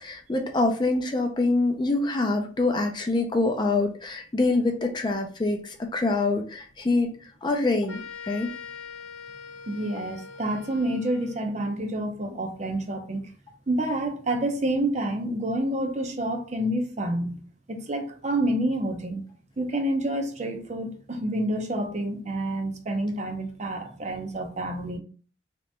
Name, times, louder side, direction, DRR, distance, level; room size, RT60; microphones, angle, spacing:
voice 1, 0.0-7.1 7.4-8.5, left 2 dB, 25° left, 0.4 m, -25 dB
sound 1, 7.9-11.5, left 6 dB, 75° left, 0.7 m, -42 dB
voice 2, 9.7-13.2 13.7-17.4 17.7-19.2 19.6-25.0, right 1 dB, 35° right, 0.6 m, -28 dB
3.3 x 2.9 x 3.2 m
head